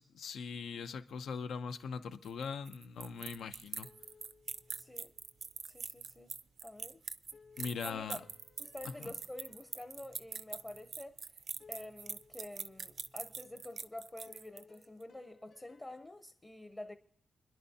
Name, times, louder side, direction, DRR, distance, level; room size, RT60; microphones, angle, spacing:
voice 1, 0.0-3.9 7.6-8.2 9.0-9.1, left 5 dB, 85° left, 0.8 m, -41 dB
sound 1, 2.2-14.8, right 5 dB, 50° right, 0.4 m, -44 dB
sound 2, 3.8-5.3 7.3-11.0 11.6-13.1 14.3-16.1, left 5 dB, 55° left, 2.3 m, -63 dB
voice 2, 4.7-5.1 5.6-6.3 6.6-7.0 7.8-8.2 8.6-11.2 11.7-17.0, left 1 dB, 15° left, 0.7 m, -48 dB
29.5 x 10.5 x 2.8 m
wide cardioid pair, 135°, 0 cm